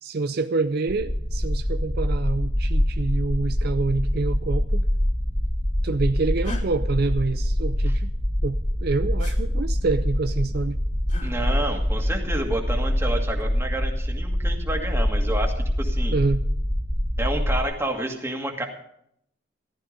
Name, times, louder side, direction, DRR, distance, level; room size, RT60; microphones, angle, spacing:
voice 1, 0.0-4.9 5.8-8.1 8.4-10.8 16.1-16.4, right 3 dB, 55° right, 10 dB, 0.5 m, -27 dB
sound 1, 0.9-17.6, equal, 20° left, 1.9 m, -25 dB
sound 2, 6.4-6.6 9.2-9.4 11.1-11.3 13.1-13.5, left 3 dB, 40° left, 2.8 m, -37 dB
voice 2, 11.2-16.2 17.2-18.7, right 1 dB, 15° right, 2 dB, 2.2 m, -29 dB
15.0 x 12.5 x 5.3 m, 0.71 s
head